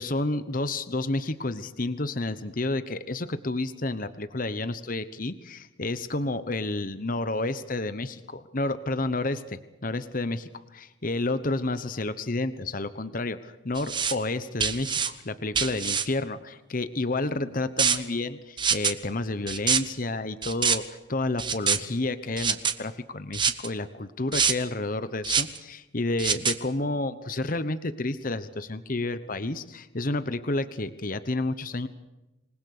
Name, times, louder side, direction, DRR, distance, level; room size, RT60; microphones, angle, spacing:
voice 1, 0.0-31.9, left 2 dB, 45° left, 12 dB, 1.1 m, -30 dB
sound 1, 13.8-14.1 14.6-15.1 15.5-16.0 17.8-18.0 18.6-18.9 19.5-19.8 20.4-20.8 21.4-21.8 22.4-22.7 23.3-23.7 24.3-24.5 25.2-25.6 26.2-26.5, right 6 dB, 25° right, 1.2 m, -24 dB
27.0 x 21.0 x 6.7 m, 1.0 s
head